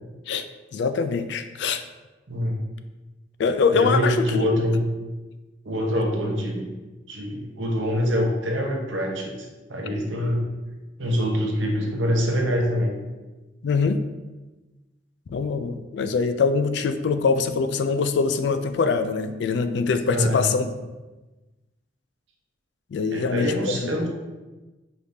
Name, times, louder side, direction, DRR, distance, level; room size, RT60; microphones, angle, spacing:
voice 1, 0.7-1.8 3.4-4.5 13.6-14.0 15.3-20.9 22.9-23.9, left 5 dB, 65° left, 10 dB, 0.3 m, -23 dB
voice 2, 2.3-2.6 3.7-4.8 5.6-6.7 7.1-10.4 11.0-12.9 20.1-20.5 23.1-24.1, equal, 85° right, 1 dB, 0.8 m, -25 dB
4.8 x 3.4 x 2.7 m, 1.2 s
head